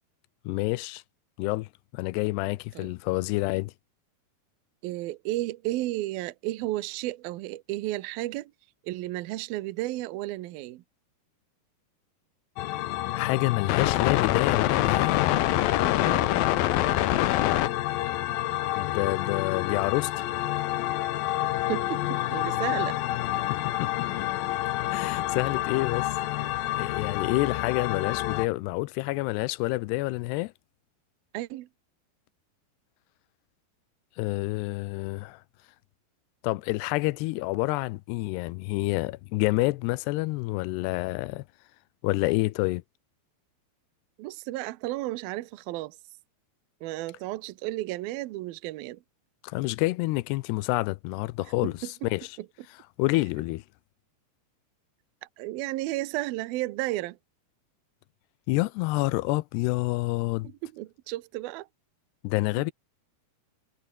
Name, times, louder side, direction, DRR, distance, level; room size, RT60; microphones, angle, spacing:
voice 1, 0.5-1.0 1.4-3.7 13.1-15.2 18.8-20.2 23.5-23.9 24.9-26.1 26.8-30.5 34.2-35.4 36.4-41.4 42.0-42.8 49.4-51.7 52.1-52.3 53.0-53.6 58.5-60.5 62.2-62.7, left 21 dB, 90° left, 2.8 m, -28 dB
voice 2, 4.8-8.5 8.8-10.8 16.0-16.3 21.7-23.0 31.3-31.7 44.2-46.0 46.8-49.0 51.6-52.1 52.4-52.5 55.4-57.2 60.4-61.7 62.6-62.7, right 17 dB, 75° right, 2.6 m, -33 dB
sound 1, 12.6-28.5, left 14 dB, 70° left, 2.7 m, -27 dB
omnidirectional pair, 4.7 m